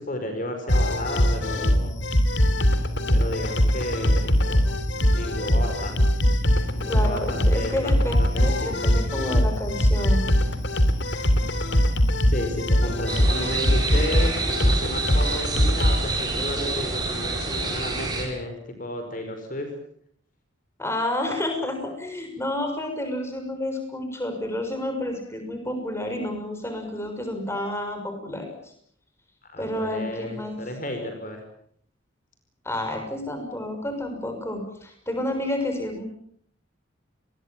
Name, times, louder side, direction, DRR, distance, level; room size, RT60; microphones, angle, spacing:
voice 1, 0.0-2.0 3.1-4.6 5.2-6.0 6.7-8.8 12.3-14.3 14.6-19.7 29.4-31.4, left 1 dB, 40° left, 5 dB, 5.0 m, -33 dB
sound 1, 0.7-16.0, equal, 60° left, 3.1 m, -21 dB
voice 2, 6.9-10.3 20.8-28.7 29.6-30.6 32.6-36.0, left 1 dB, 15° left, 5 dB, 6.5 m, -30 dB
sound 2, 13.1-18.3, right 3 dB, 20° right, 7.0 m, -28 dB
29.0 x 21.5 x 7.4 m, 0.65 s
head